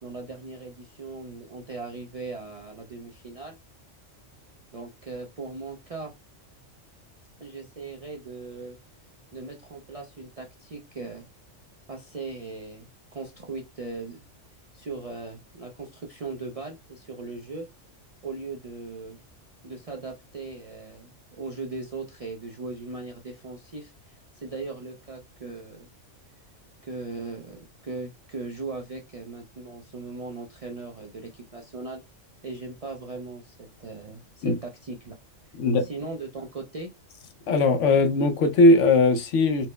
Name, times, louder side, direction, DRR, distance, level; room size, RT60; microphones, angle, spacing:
voice 1, 0.0-3.6 4.7-6.1 7.4-8.8 9.3-11.2 11.9-14.2 14.7-17.7 18.2-19.3 19.6-25.9 26.8-32.0 32.4-35.1 35.8-36.9, right 3 dB, 45° right, 0.4 m, -38 dB
voice 2, 35.5-35.9 37.5-39.7, left 2 dB, 75° left, 1.0 m, -19 dB
4.4 x 2.0 x 3.2 m
omnidirectional pair, 1.3 m